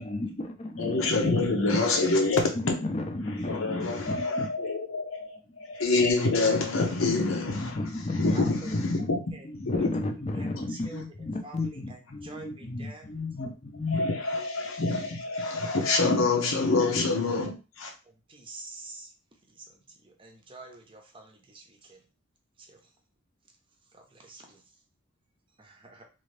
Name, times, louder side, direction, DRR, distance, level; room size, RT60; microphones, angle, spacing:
voice 1, 0.0-1.5 2.3-4.5 7.5-9.2 9.5-14.0, left 2 dB, 30° left, 0.5 m, -34 dB
voice 2, 0.8-2.7 3.4-9.2 9.7-9.9 10.5-10.6 13.4-13.5 13.9-17.9, left 3 dB, 85° left, 0.9 m, -26 dB
voice 3, 8.3-8.8 9.3-9.5 9.7-13.2 18.0-22.1 22.6-23.0 23.8-24.8 25.6-26.1, right 3 dB, 25° right, 0.6 m, -48 dB
2.8 x 2.7 x 3.2 m
head